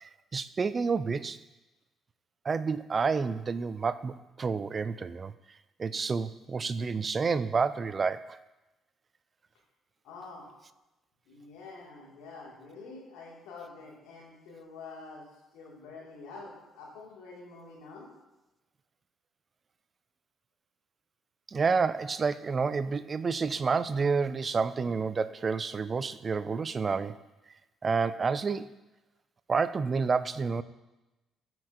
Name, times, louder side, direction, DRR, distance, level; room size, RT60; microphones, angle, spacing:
voice 1, 0.3-1.4 2.5-5.3 5.8-8.4 21.5-27.2 27.8-28.7 29.5-30.6, right 5 dB, 35° right, 15 dB, 0.3 m, -29 dB
voice 2, 10.0-10.5 11.3-15.2 15.5-18.1, left 3 dB, 60° left, -3 dB, 1.9 m, -47 dB
12.5 x 4.5 x 2.5 m, 1.0 s
figure-of-eight pair, 45°, 0 cm